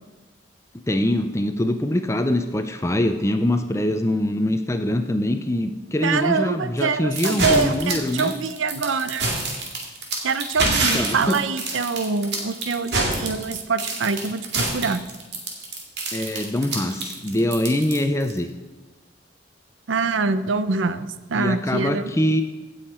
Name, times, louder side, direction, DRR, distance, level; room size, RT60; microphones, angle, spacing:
voice 1, 0.9-8.3 10.9-11.4 16.1-18.5 21.4-22.4, left 1 dB, 15° left, 7 dB, 0.5 m, -23 dB
voice 2, 6.0-9.3 10.2-15.0 19.9-22.1, right 4 dB, 85° right, 13 dB, 0.6 m, -24 dB
sound 1, 7.2-18.4, right 2 dB, 60° right, 2.1 m, -26 dB
16.5 x 6.5 x 4.3 m, 1.2 s
head